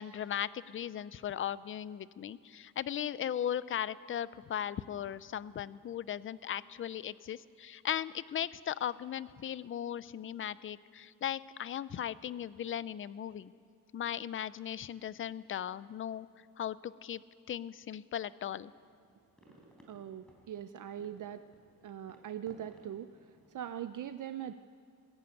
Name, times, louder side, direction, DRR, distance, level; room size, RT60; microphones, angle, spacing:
voice 1, 0.0-13.5 13.9-16.3 16.6-17.2 17.5-18.7, left 10 dB, 35° left, 18 dB, 0.5 m, -37 dB
sound 1, 18.5-23.7, right 1 dB, ahead, 4.0 m, -62 dB
voice 2, 19.9-21.4 21.8-23.1 23.5-24.5, right 10 dB, 55° right, 11 dB, 0.6 m, -41 dB
21.5 x 14.5 x 9.1 m, 2.3 s
cardioid pair, 155°, 37 cm